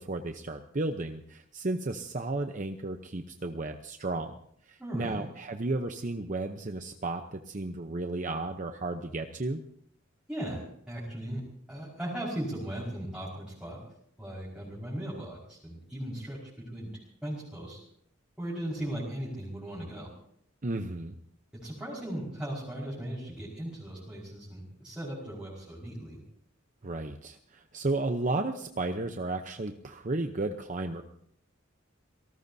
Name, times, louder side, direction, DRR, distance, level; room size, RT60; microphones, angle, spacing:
voice 1, 0.0-4.3 4.7-9.6 20.6-21.2 26.8-31.0, right 2 dB, 40° right, 6 dB, 0.8 m, -33 dB
voice 2, 4.8-5.2 10.3-10.6 10.9-11.4 11.7-13.8 14.2-16.4 16.7-16.9 17.2-17.8 18.4-20.1 21.5-26.2, right 1 dB, 5° right, -8 dB, 5.1 m, -37 dB
27.0 x 19.0 x 2.8 m, 0.67 s
head